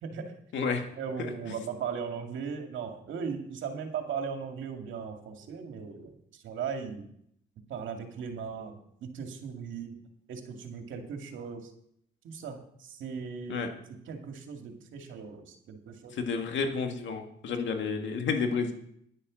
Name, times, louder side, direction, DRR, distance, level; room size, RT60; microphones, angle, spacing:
voice 1, 0.0-0.3 1.0-7.0 7.7-10.0 10.3-11.7 12.2-13.6 14.1-16.2, right 6 dB, 75° right, 4 dB, 2.2 m, -38 dB
voice 2, 0.5-0.8 1.2-1.3 13.5-13.7 16.1-18.7, left 5 dB, 70° left, 5 dB, 2.0 m, -30 dB
10.5 x 9.1 x 6.3 m, 0.70 s
cardioid pair, 90°, 20 cm